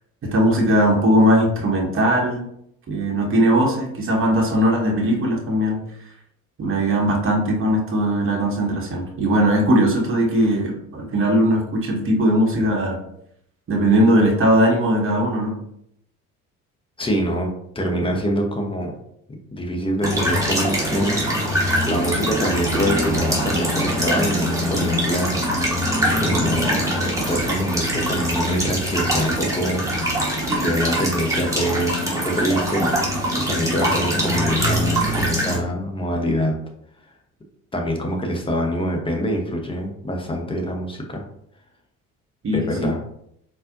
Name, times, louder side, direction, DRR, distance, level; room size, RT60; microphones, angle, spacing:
voice 1, 0.2-2.4 2.9-5.8 6.6-13.0 13.7-15.5 42.4-43.0, equal, 30° right, 0 dB, 1.0 m, -19 dB
voice 2, 17.0-17.5 17.7-18.9 19.5-21.2 21.4-29.8 30.6-32.9 33.3-36.5 37.7-41.2 42.5-43.0, equal, 15° left, 1 dB, 0.8 m, -25 dB
sound 1, 20.0-35.6, equal, 5° right, 1.2 m, -23 dB
4.0 x 2.5 x 2.5 m, 0.74 s
figure-of-eight pair, 55°, 42 cm